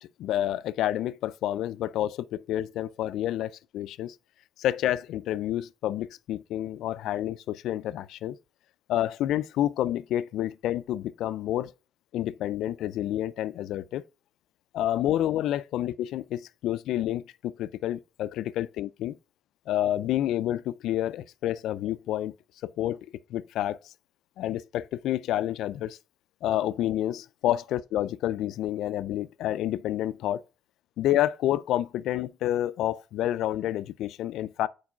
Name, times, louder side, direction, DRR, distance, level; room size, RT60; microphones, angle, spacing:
voice 1, 0.0-4.2 4.6-8.4 8.9-11.7 12.1-14.0 14.7-19.2 19.7-22.3 22.6-23.8 24.4-26.0 26.4-30.4 31.0-34.7, left 12 dB, 85° left, 0.3 m, -29 dB
4.8 x 4.5 x 5.9 m
cardioid pair, 165°, 0 cm